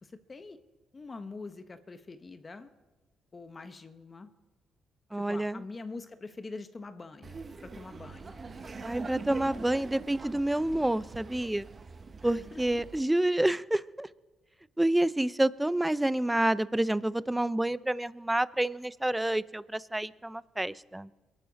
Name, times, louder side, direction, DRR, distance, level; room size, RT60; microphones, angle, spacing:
voice 1, 0.0-0.6 0.9-2.7 3.3-4.3 5.1-8.4 12.2-12.6, left 3 dB, 30° left, 9 dB, 1.0 m, -44 dB
voice 2, 5.1-5.6 8.8-11.7 12.2-14.1 14.8-21.1, right 1 dB, 10° right, 18 dB, 0.4 m, -28 dB
Laughter, 7.2-13.0, right 4 dB, 35° right, 0.8 m, -43 dB
22.5 x 11.5 x 4.0 m, 1.2 s
cardioid pair, 90°, 0 cm